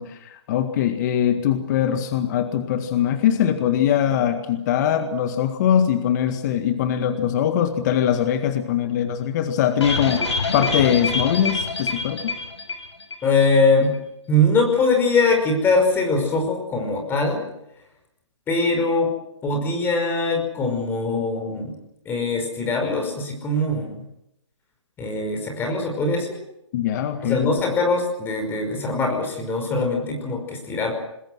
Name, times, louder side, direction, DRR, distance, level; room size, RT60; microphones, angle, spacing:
voice 1, 0.0-10.3 10.5-12.4 26.7-27.5, left 9 dB, 35° left, 7 dB, 1.9 m, -22 dB
sound 1, 9.8-13.3 13.5-13.6 13.9-14.0, left 3 dB, 70° left, 6.4 m, -26 dB
voice 2, 13.2-13.9 14.3-17.4 18.5-19.1 19.4-21.8 22.1-24.0 25.0-26.4 27.2-30.9, left 2 dB, 15° left, 3 dB, 5.2 m, -22 dB
26.0 x 21.0 x 6.3 m, 0.84 s
figure-of-eight pair, 135°, 15 cm